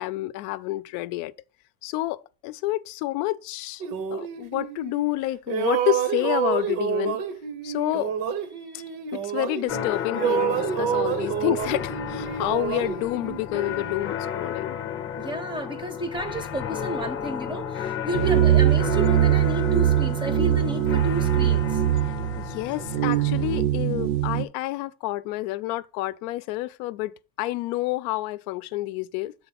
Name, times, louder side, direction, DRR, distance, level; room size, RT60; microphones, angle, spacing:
voice 1, 0.0-1.3 1.8-3.8 4.1-7.2 7.6-8.2 8.7-8.8 9.1-14.8 18.1-18.4 22.4-29.3, left 17 dB, 85° left, 0.5 m, -29 dB
sound 1, 3.8-5.2 5.5-9.9 10.1-14.0, right 9 dB, 85° right, 1.0 m, -28 dB
sound 2, 9.7-23.6, left 8 dB, 30° left, 0.7 m, -33 dB
voice 2, 15.2-21.8, equal, 10° right, 0.5 m, -32 dB
sound 3, 18.1-24.4, right 12 dB, 70° right, 0.7 m, -22 dB
6.9 x 3.8 x 5.7 m
cardioid pair, 160°, 42 cm